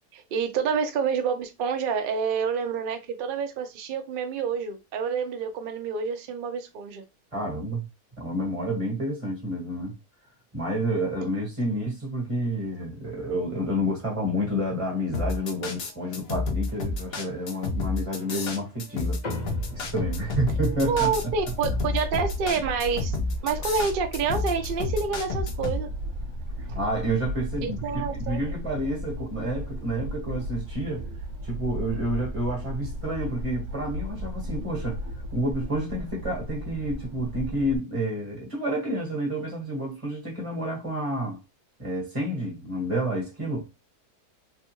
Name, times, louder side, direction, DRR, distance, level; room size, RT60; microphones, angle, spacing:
voice 1, 0.1-7.0 20.8-23.2 23.4-25.9 26.7-26.8 27.6-28.4, right 5 dB, 70° right, 0.5 m, -28 dB
voice 2, 7.3-7.8 8.2-10.0 10.5-19.2 19.7-21.1 26.6-31.1 31.4-35.0 35.3-41.4 41.8-43.7, right 1 dB, 20° right, 1.2 m, -29 dB
sound 1, 15.1-25.8, left 3 dB, 60° left, 0.7 m, -30 dB
sound 2, 19.2-24.0, left 1 dB, 35° left, 0.8 m, -41 dB
sound 3, 19.4-37.8, equal, 55° right, 1.3 m, -35 dB
3.5 x 2.3 x 2.8 m
omnidirectional pair, 1.7 m